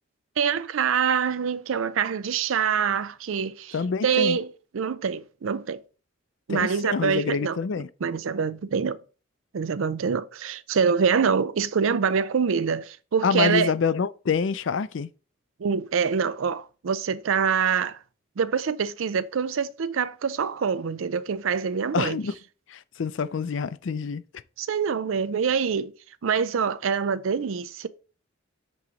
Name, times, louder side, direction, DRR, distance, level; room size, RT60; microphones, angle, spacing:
voice 1, 0.4-3.8 4.0-4.5 4.7-5.8 6.5-7.6 8.0-9.0 9.5-13.7 15.6-18.0 18.4-22.2 24.6-25.9 26.2-27.9, right 6 dB, 85° right, 0.5 m, -25 dB
voice 2, 3.7-4.4 6.5-7.9 13.2-15.1 21.9-22.3 22.7-24.2, left 5 dB, 70° left, 0.4 m, -26 dB
8.4 x 3.1 x 5.0 m
head